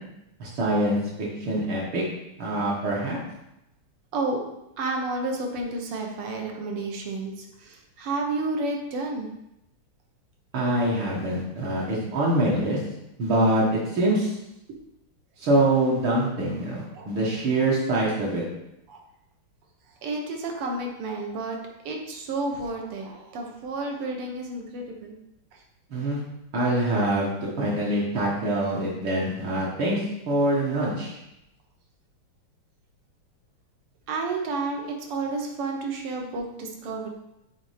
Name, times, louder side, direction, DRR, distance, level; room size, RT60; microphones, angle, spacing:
voice 1, 0.4-2.0 2.4-3.2 10.5-12.8 13.2-14.4 15.4-18.4 25.9-26.2 26.5-31.2, right 1 dB, 65° right, -5 dB, 2.1 m, -24 dB
voice 2, 4.1-4.4 4.8-9.3 16.9-17.1 18.9-19.0 20.0-21.6 21.9-25.2 25.5-25.6 34.1-37.1, right 3 dB, 85° right, 1 dB, 2.0 m, -31 dB
7.2 x 3.5 x 5.0 m, 0.86 s
omnidirectional pair, 2.4 m